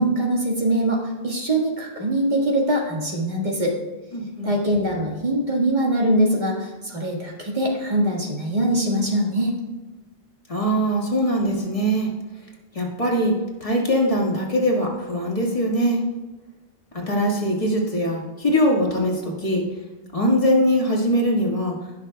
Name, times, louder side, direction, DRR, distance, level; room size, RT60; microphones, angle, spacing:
voice 1, 0.0-3.7 4.4-9.5, right 1 dB, 45° right, -2 dB, 1.8 m, -22 dB
voice 2, 4.1-4.5 10.5-12.1 12.7-13.3 13.6-16.0 16.9-19.6 20.1-21.8, equal, 35° left, -2 dB, 1.7 m, -22 dB
17.5 x 6.1 x 2.3 m, 1.2 s
omnidirectional pair, 1.0 m